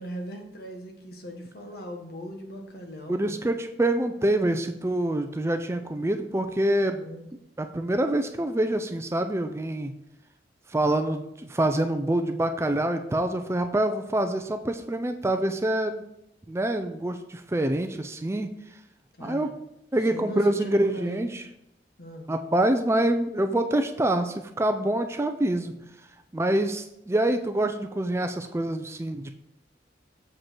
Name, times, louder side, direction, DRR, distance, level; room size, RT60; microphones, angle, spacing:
voice 1, 0.0-3.4 6.8-7.2 19.2-19.5 20.1-21.3 22.0-22.3, equal, 60° left, 3 dB, 1.3 m, -39 dB
voice 2, 3.1-7.0 7.6-9.9 10.7-16.0 16.5-18.5 19.2-19.5 19.9-21.5 22.3-25.7 26.3-29.3, right 1 dB, 15° right, 7 dB, 0.4 m, -26 dB
7.3 x 5.3 x 4.5 m, 0.83 s
head